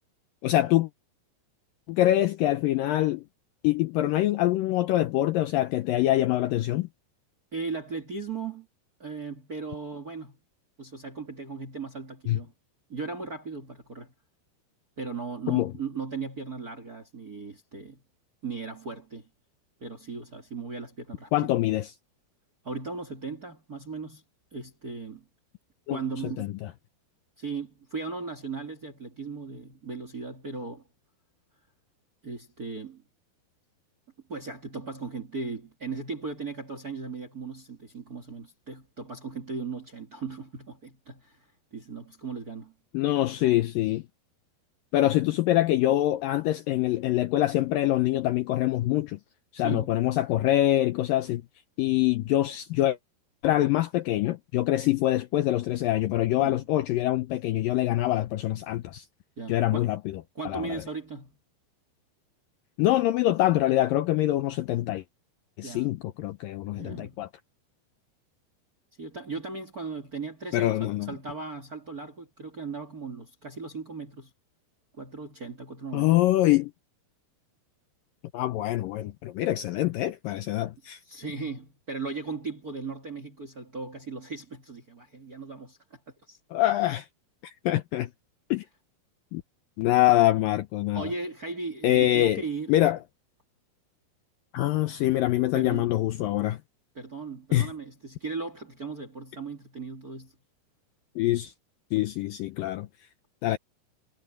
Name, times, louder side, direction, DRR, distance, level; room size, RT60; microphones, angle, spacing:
voice 1, 0.4-0.9 1.9-3.2 3.6-6.9 12.3-12.4 15.5-15.7 21.3-21.9 25.9-26.0 26.4-26.5 42.9-44.0 44.9-49.2 49.5-51.4 51.8-53.0 53.4-59.1 59.5-60.2 60.5-60.8 62.8-65.0 65.6-67.3 70.5-71.1 75.9-76.7 78.3-81.0 86.5-87.1 87.4-88.1 88.5-88.6 89.3-89.4 89.8-91.1 91.8-92.4 92.7-93.0 94.5-96.6 97.5-97.7 101.2-101.5 101.9-102.9 103.4-103.6, left 15 dB, 80° left, 2.1 m, -24 dB
voice 2, 7.5-8.7 9.0-10.4 10.8-12.5 12.9-14.1 15.0-18.0 18.4-19.3 19.8-21.3 22.6-24.2 24.5-25.2 25.9-26.5 27.4-30.8 32.2-33.0 34.3-41.5 41.7-42.7 49.6-49.9 56.3-56.6 59.4-59.9 60.3-61.4 65.6-66.0 66.8-67.2 69.0-74.3 75.0-76.1 81.1-86.0 86.3-86.4 90.9-92.7 95.5-95.9 96.9-100.3, right 4 dB, 35° right, 1.6 m, -37 dB
omnidirectional pair, 4.7 m